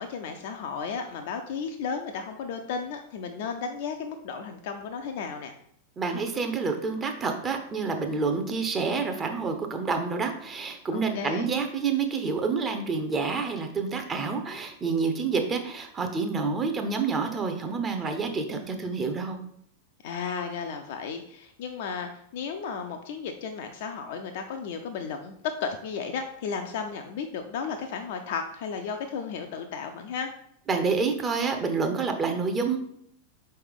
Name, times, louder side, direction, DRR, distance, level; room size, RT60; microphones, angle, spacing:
voice 1, 0.0-5.5 10.9-11.5 20.0-25.3 25.6-30.3, left 6 dB, 50° left, 5 dB, 0.4 m, -34 dB
voice 2, 6.0-19.4 30.7-32.8, right 4 dB, 20° right, 5 dB, 0.6 m, -28 dB
4.6 x 3.2 x 3.5 m, 0.68 s
figure-of-eight pair, 90°, 0 cm